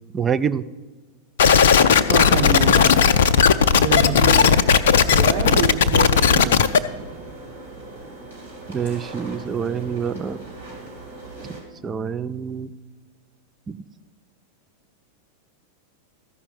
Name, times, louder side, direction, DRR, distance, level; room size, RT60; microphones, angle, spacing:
voice 1, 0.1-0.6 8.7-10.4 11.4-11.6 11.8-12.7 13.7-13.8, right 7 dB, 20° right, 10 dB, 0.4 m, -26 dB
sound 1, 1.4-6.8, left 7 dB, 60° left, 0.5 m, -15 dB
sound 2, 1.7-11.6, right 2 dB, 75° right, 3.0 m, -39 dB
voice 2, 2.1-3.0 3.8-4.7 5.2-6.7, right 7 dB, 40° right, 4 dB, 0.8 m, -27 dB
14.0 x 5.6 x 7.7 m, 1.3 s
figure-of-eight pair, 90°, 0 cm